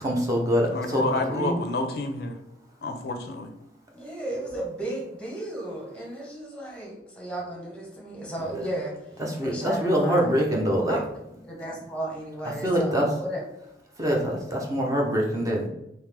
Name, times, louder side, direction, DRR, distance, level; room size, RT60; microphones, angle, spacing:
voice 1, 0.0-1.0 1.3-1.5 9.2-11.0 12.6-13.1 14.0-15.7, equal, 20° right, -1 dB, 0.6 m, -24 dB
voice 2, 0.7-2.4 2.8-3.5, left 2 dB, 60° left, 5 dB, 0.4 m, -29 dB
voice 3, 3.9-8.9 9.4-10.3 10.9-11.0 11.4-13.4, right 1 dB, 5° left, -2 dB, 0.9 m, -34 dB
3.5 x 2.8 x 3.3 m, 0.84 s
head